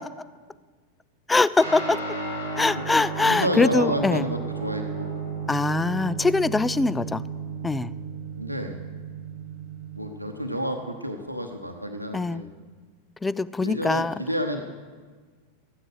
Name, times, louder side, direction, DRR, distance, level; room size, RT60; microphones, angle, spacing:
voice 1, 1.3-2.0 2.6-4.3 5.5-7.2 7.6-7.9 12.1-12.4 13.2-14.1, left 3 dB, 10° left, 19 dB, 0.3 m, -23 dB
Guitar, 1.6-11.3, right 4 dB, 80° left, 5.2 m, -34 dB
voice 2, 3.3-5.1 8.3-8.8 9.9-12.5 13.6-14.6, equal, 90° right, 4 dB, 0.9 m, -29 dB
14.0 x 10.0 x 6.3 m, 1.5 s
figure-of-eight pair, 90°, 0 cm